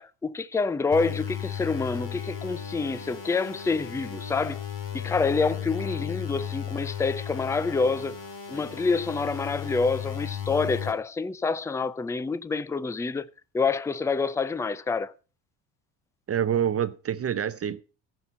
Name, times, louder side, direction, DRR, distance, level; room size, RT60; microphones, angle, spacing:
voice 1, 0.0-4.6 4.9-8.2 8.5-13.2 13.5-15.1, left 4 dB, 10° left, 0.4 m, -27 dB
sound 1, 0.9-10.9, left 9 dB, 50° left, 3.1 m, -35 dB
voice 2, 16.3-17.8, right 9 dB, 35° right, 0.7 m, -26 dB
14.5 x 5.7 x 5.3 m
cardioid pair, 95°, 40 cm